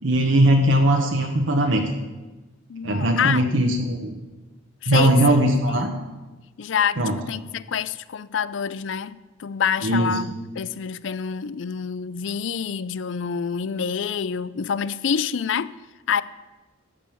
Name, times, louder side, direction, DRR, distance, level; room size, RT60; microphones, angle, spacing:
voice 1, 0.0-1.8 2.8-4.1 4.9-5.9 7.0-7.2 9.8-10.1, right 1 dB, 65° right, 1.1 m, -19 dB
voice 2, 2.7-3.4 4.8-5.9 6.6-7.0 7.3-10.3 10.6-15.7 16.1-16.2, left 7 dB, 65° left, 0.4 m, -27 dB
13.5 x 5.4 x 8.7 m
head